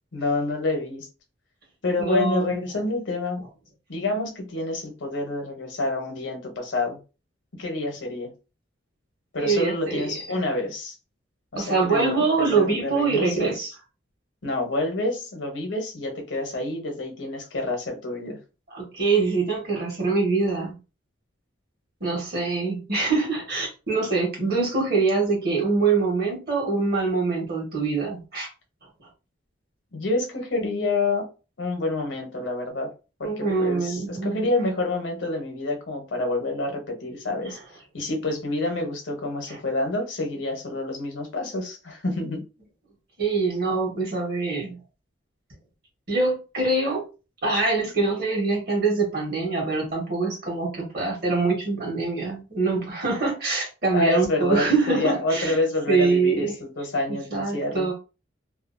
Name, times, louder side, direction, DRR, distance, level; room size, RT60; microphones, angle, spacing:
voice 1, 0.1-1.1 1.8-3.4 3.9-7.0 7.5-8.3 9.3-10.9 11.5-13.7 14.4-18.4 29.9-31.3 31.6-32.9 33.2-37.6 37.9-42.5 53.9-57.9, left 2 dB, 70° left, 3 dB, 0.8 m, -28 dB
voice 2, 2.0-2.5 9.4-10.4 11.6-13.7 18.7-20.8 22.0-28.5 33.2-34.4 37.4-37.5 39.5-39.6 43.2-44.8 46.1-47.0 47.4-55.6 55.9-56.5 57.3-57.9, right 4 dB, 50° right, -1 dB, 1.2 m, -24 dB
2.7 x 2.3 x 2.5 m, 0.32 s
head